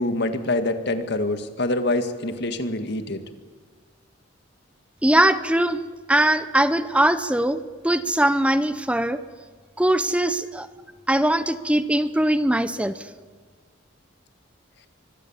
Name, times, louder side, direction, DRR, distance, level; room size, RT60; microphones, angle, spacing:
voice 1, 0.0-3.2, left 2 dB, 55° left, 8 dB, 1.9 m, -25 dB
voice 2, 5.0-5.8 6.1-9.2 9.8-10.7 11.1-12.9, right 1 dB, 5° right, 12 dB, 0.7 m, -21 dB
24.5 x 21.5 x 7.3 m, 1.5 s
head